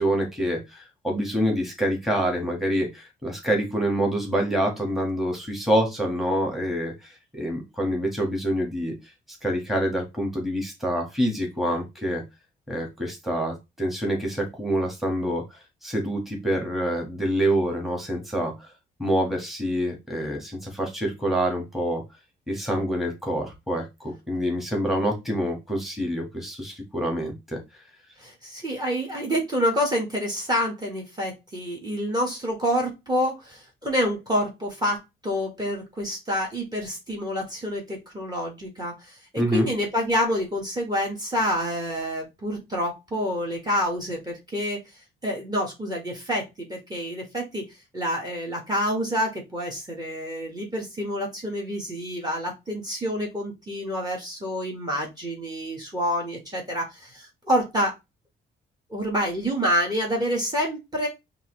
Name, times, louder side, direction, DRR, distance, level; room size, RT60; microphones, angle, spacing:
voice 1, 0.0-8.9 9.4-12.2 12.7-18.7 19.0-22.0 22.5-27.6 39.4-39.7, equal, ahead, 0 dB, 1.6 m, -26 dB
voice 2, 28.2-44.8 45.2-47.6 47.9-57.9 58.9-61.1, equal, 20° right, 0 dB, 1.5 m, -28 dB
5.4 x 2.7 x 3.2 m, 0.22 s
cardioid pair, 90°, 20 cm